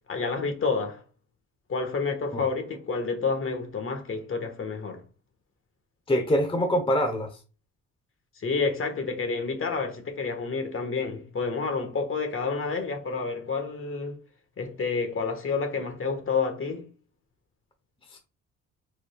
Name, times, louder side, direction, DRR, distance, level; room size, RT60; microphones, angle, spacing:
voice 1, 0.1-1.0 1.7-5.0 8.4-14.2 14.6-16.9, left 4 dB, 45° left, 1.4 m, -29 dB
voice 2, 6.1-7.3 18.1-18.2, equal, 15° left, 0.9 m, -24 dB
5.1 x 4.3 x 2.3 m
cardioid pair, 90°, 30 cm